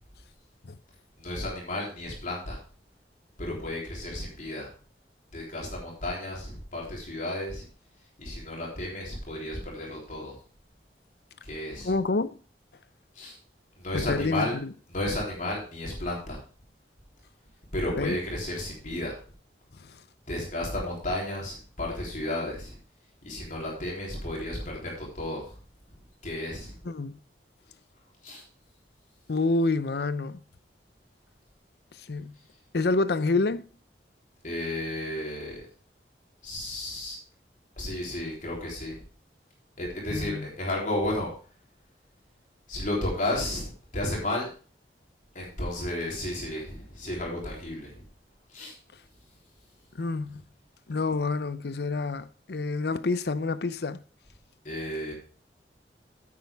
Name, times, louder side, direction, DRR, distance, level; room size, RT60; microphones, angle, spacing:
voice 1, 1.2-2.6 3.4-4.7 5.3-7.7 8.2-10.3 11.4-11.9 13.1-13.4 13.8-14.6 14.9-16.4 17.7-19.1 20.3-22.8 23.2-25.6 25.9-26.8 28.2-28.4 34.4-35.7 36.4-37.2 37.8-39.0 39.8-41.3 42.7-44.5 45.3-48.0 48.5-48.8 54.6-55.1, left 1 dB, 45° left, 3.6 m, -33 dB
voice 2, 11.8-12.4 13.9-14.5 18.0-18.2 19.8-19.9 26.9-27.2 29.3-30.4 32.0-32.3 32.7-33.7 40.1-40.5 49.9-50.4 50.9-54.0, left 3 dB, 60° left, 0.6 m, -28 dB
9.6 x 8.6 x 3.5 m
head